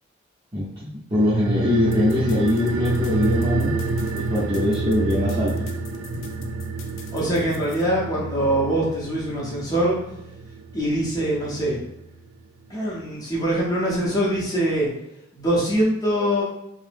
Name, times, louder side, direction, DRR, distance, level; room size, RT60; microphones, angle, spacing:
voice 1, 0.5-3.8 4.1-5.7, left 1 dB, 20° right, -11 dB, 0.6 m, -22 dB
sound 1, 1.1-12.0 12.3-12.4, right 3 dB, 75° right, 0.3 m, -29 dB
sound 2, 1.9-7.8, left 3 dB, 65° left, 0.4 m, -40 dB
voice 2, 7.1-10.0 10.7-11.8 12.7-14.9 15.3-16.4, right 1 dB, 20° left, -5 dB, 0.7 m, -23 dB
2.7 x 2.0 x 3.3 m, 0.82 s
head